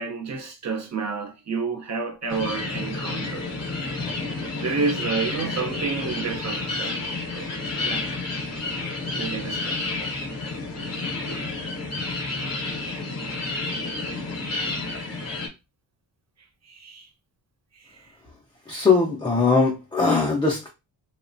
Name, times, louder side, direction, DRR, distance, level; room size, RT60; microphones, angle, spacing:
voice 1, 0.0-3.5 4.6-7.5 7.8-8.1 9.1-9.9 11.3-11.4 14.7-14.8 15.2-15.3 16.4-17.1 17.7-18.1, right 5 dB, 35° right, 0.6 m, -30 dB
sound 1, 2.3-15.5, left 3 dB, 35° left, 0.7 m, -30 dB
voice 2, 18.7-20.7, left 4 dB, 10° left, 0.4 m, -20 dB
2.9 x 2.1 x 2.5 m
wide cardioid pair, 135°, 45 cm